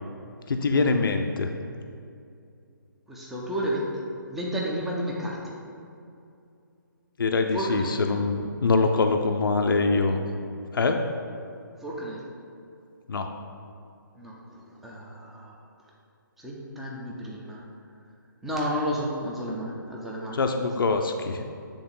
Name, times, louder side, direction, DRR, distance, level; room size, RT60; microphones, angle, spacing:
voice 1, 0.5-1.5 7.2-10.2 10.7-11.1 13.1-13.3 20.3-21.4, left 3 dB, 80° left, 5 dB, 0.5 m, -24 dB
voice 2, 3.1-5.6 7.5-7.9 11.8-12.2 14.1-15.5 16.4-17.6 18.4-20.7, equal, ahead, -5 dB, 0.5 m, -32 dB
7.7 x 3.5 x 3.8 m, 2.5 s
hypercardioid pair, 155°, 11 cm